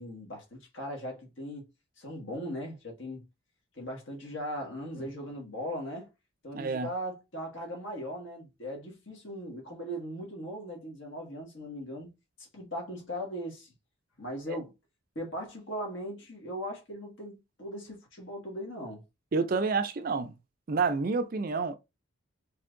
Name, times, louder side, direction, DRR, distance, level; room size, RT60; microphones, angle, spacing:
voice 1, 0.0-1.6 2.0-3.3 3.8-6.1 6.4-12.1 12.4-13.7 14.2-14.7 15.2-19.0, equal, 65° left, 1.8 m, -39 dB
voice 2, 6.5-6.9 14.5-14.6 19.3-20.3 20.7-21.8, right 4 dB, 45° right, 0.4 m, -29 dB
4.3 x 3.4 x 2.6 m
head